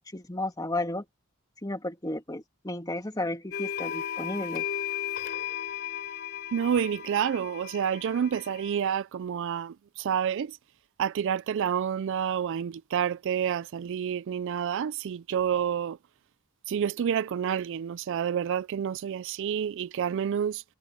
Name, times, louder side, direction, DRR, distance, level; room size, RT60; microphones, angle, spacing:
voice 1, 0.1-1.1 1.6-4.7, left 2 dB, 20° left, 2.4 m, -33 dB
sound 1, 3.5-8.8, left 9 dB, 45° left, 3.5 m, -35 dB
voice 2, 6.5-10.6 11.0-16.0 16.7-20.6, right 8 dB, 60° right, 0.3 m, -29 dB
head